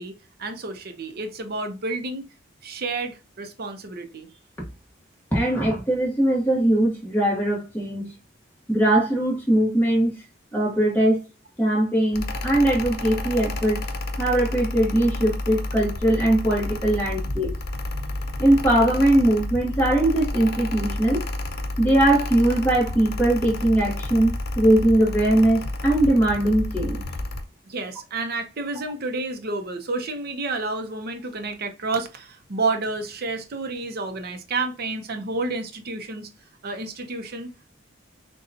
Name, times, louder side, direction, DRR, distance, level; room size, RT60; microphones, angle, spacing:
voice 1, 0.0-2.2 2.6-4.3 17.2-17.4 17.9-18.2 27.7-36.3 36.6-37.7, right 3 dB, 55° right, 0.7 m, -30 dB
voice 2, 5.3-8.1 8.7-10.2 10.5-11.2 11.6-13.8 14.2-17.5 18.4-21.2 21.8-27.0, right 1 dB, 10° left, 1.2 m, -20 dB
Mechanical fan, 12.1-27.4, left 2 dB, 55° left, 0.6 m, -30 dB
6.5 x 2.3 x 2.7 m
head